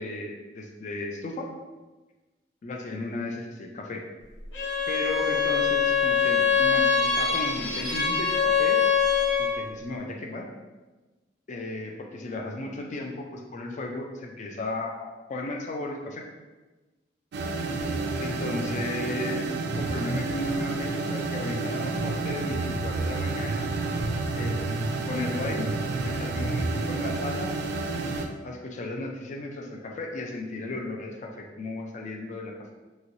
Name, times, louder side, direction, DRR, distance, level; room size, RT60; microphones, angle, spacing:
voice 1, 0.0-1.5 2.6-4.0 4.9-8.8 9.4-10.5 11.5-16.3 18.2-23.7 24.4-27.6 28.4-32.5, left 2 dB, 40° left, 2 dB, 0.4 m, -35 dB
Bowed string instrument, 4.5-9.7, left 6 dB, 70° left, 0.9 m, -23 dB
sound 1, 17.3-28.3, right 3 dB, 60° right, 0.3 m, -29 dB
3.1 x 2.8 x 2.6 m, 1.2 s
head